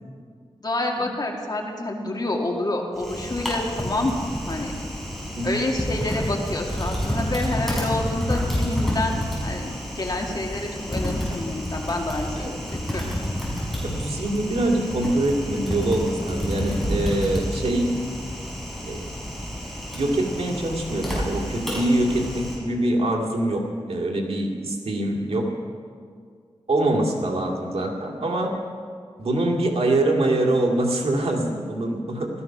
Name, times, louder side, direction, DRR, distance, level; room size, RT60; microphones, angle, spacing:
voice 1, 0.6-4.2 4.5-4.7 5.4-13.1, left 2 dB, 40° left, 1 dB, 2.2 m, -28 dB
Typing, 3.0-22.6, equal, ahead, 5.5 m, -29 dB
voice 2, 5.4-5.7 12.3-12.5 13.8-18.0 18.8-19.0 19.9-25.5 26.7-28.5 29.2-32.3, right 1 dB, 90° right, 0 dB, 2.3 m, -24 dB
15.5 x 13.5 x 6.0 m, 2.1 s
wide cardioid pair, 100°, 10 cm